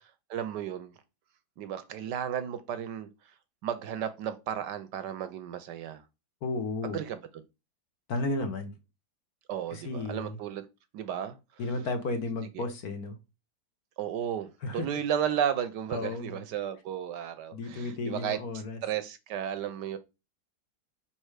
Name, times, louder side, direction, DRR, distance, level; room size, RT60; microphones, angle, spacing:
voice 1, 0.3-0.9 1.6-3.1 3.6-6.0 6.9-7.2 9.5-10.6 10.9-11.4 12.5-12.6 14.0-18.4 18.8-20.0, right 9 dB, 70° right, 1.2 m, -33 dB
voice 2, 6.4-7.0 8.1-8.7 9.7-10.4 11.6-13.2 14.6-14.9 15.9-16.4 17.5-18.8, left 2 dB, 55° left, 1.4 m, -33 dB
5.2 x 4.3 x 4.8 m
omnidirectional pair, 2.1 m